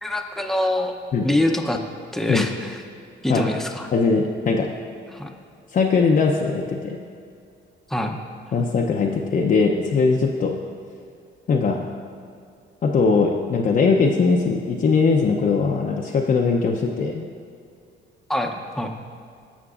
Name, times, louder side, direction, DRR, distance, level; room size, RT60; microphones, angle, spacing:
voice 1, 0.0-0.9 1.2-1.8 2.1-2.8 3.2-3.9 5.1-5.3 7.9-8.2 18.3-18.9, left 1 dB, ahead, 3 dB, 0.6 m, -24 dB
voice 2, 3.9-4.7 5.7-7.0 8.5-10.6 11.5-11.8 12.8-17.3, left 4 dB, 45° left, 0 dB, 0.6 m, -20 dB
14.5 x 5.9 x 2.4 m, 2.3 s
cardioid pair, 90°, 20 cm